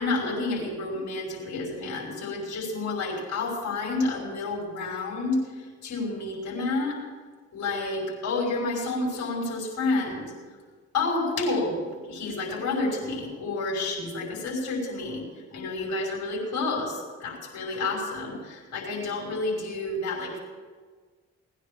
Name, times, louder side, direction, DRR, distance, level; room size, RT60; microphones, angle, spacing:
voice 1, 0.0-7.0 7.5-10.3 10.9-15.2 15.5-20.4, left 3 dB, 60° left, -1 dB, 6.0 m, -29 dB
19.5 x 9.9 x 7.3 m, 1.5 s
hypercardioid pair, 45°, 32 cm